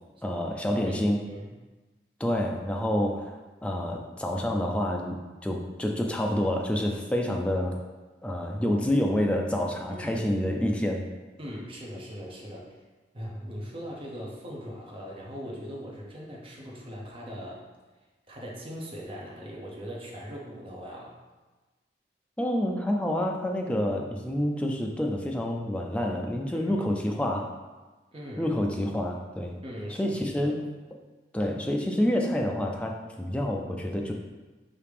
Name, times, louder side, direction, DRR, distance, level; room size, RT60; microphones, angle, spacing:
voice 1, 0.2-1.2 2.2-5.2 5.4-7.7 8.2-11.1 22.4-27.5 28.4-29.5 29.9-30.7 31.3-34.1, left 1 dB, 5° left, 1 dB, 0.3 m, -28 dB
voice 2, 9.9-10.3 11.4-12.8 13.1-17.6 18.3-21.1 26.5-26.8 28.1-28.5 29.6-30.5, equal, 30° right, -3 dB, 0.7 m, -40 dB
4.9 x 2.8 x 3.4 m, 1.2 s
head